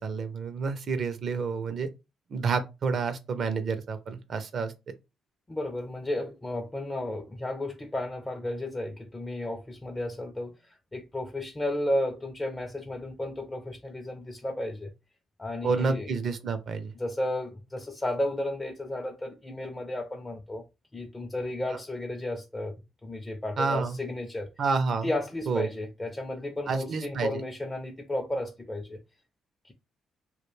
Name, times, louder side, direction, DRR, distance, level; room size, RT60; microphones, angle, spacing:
voice 1, 0.0-1.9 2.3-4.7 15.6-16.9 23.6-24.0 24.6-25.1 25.5-25.7 26.7-27.3, right 4 dB, 55° right, 0.5 m, -29 dB
voice 2, 5.5-14.9 15.4-16.1 16.9-20.6 20.9-22.7 23.0-24.5 25.0-29.0 29.6-29.7, left 1 dB, 15° left, 0.4 m, -33 dB
2.3 x 2.1 x 3.1 m
cardioid pair, 90°, 0 cm